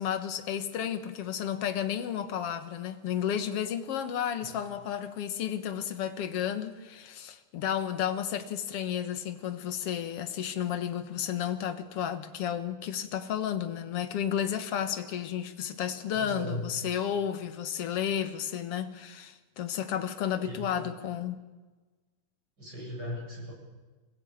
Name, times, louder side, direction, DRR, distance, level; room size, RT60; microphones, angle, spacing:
voice 1, 0.0-21.4, left 9 dB, 60° left, 1.7 m, -32 dB
voice 2, 16.1-16.7 20.4-20.7 22.6-23.5, equal, 25° right, 8.4 m, -37 dB
27.0 x 16.5 x 8.7 m
omnidirectional pair, 4.2 m